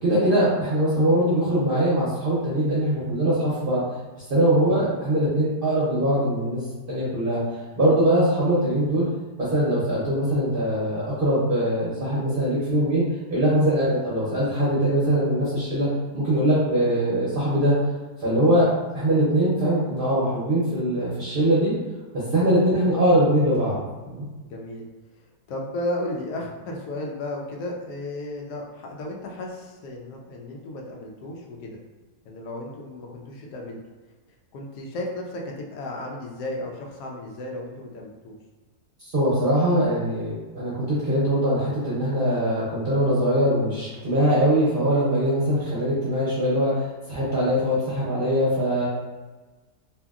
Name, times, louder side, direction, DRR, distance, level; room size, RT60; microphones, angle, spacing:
voice 1, 0.0-3.8 4.3-6.6 6.9-7.4 7.8-9.1 9.4-13.0 13.3-15.9 16.1-17.7 18.2-18.7 18.9-21.7 22.3-23.8 24.0-24.3 39.1-48.9, right 1 dB, 55° right, -8 dB, 0.6 m, -22 dB
voice 2, 24.5-24.8 25.5-31.8 32.2-33.8 34.5-38.3, left 1 dB, 85° left, 0 dB, 1.2 m, -34 dB
2.8 x 2.7 x 2.3 m, 1.2 s
omnidirectional pair, 1.7 m